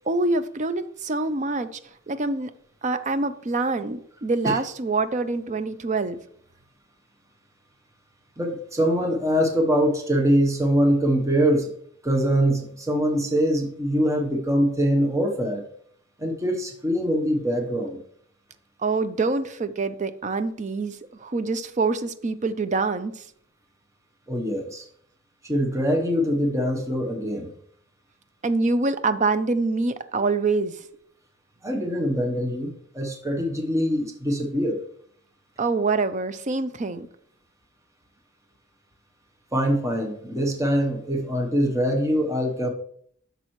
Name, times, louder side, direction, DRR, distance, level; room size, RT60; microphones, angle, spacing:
voice 1, 0.1-1.7 2.1-2.5 2.8-6.2 18.8-21.0 21.2-23.1 28.4-30.7 35.6-37.1, right 3 dB, 35° right, 0.5 m, -25 dB
voice 2, 8.4-11.7 12.0-15.6 16.2-18.0 24.3-24.8 25.4-27.5 31.6-34.8 39.5-42.7, equal, 15° right, 1.0 m, -23 dB
10.5 x 6.7 x 3.1 m
head